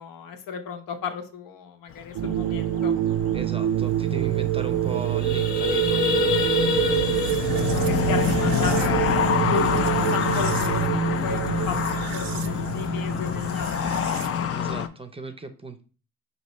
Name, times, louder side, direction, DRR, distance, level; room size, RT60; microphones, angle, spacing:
voice 1, 0.0-2.9 7.6-14.0, left 6 dB, 80° left, 6 dB, 0.8 m, -34 dB
sound 1, 1.9-14.9, left 8 dB, 45° left, 0.4 m, -27 dB
sound 2, 2.2-14.4, right 13 dB, 85° right, 0.5 m, -26 dB
voice 2, 3.3-6.1 14.5-15.8, right 4 dB, 15° right, 7 dB, 0.5 m, -37 dB
sound 3, 3.9-4.0 4.2-4.4 4.8-9.1, left 4 dB, 25° left, 0.8 m, -27 dB
5.3 x 2.7 x 3.1 m, 0.38 s
cardioid pair, 90°, 33 cm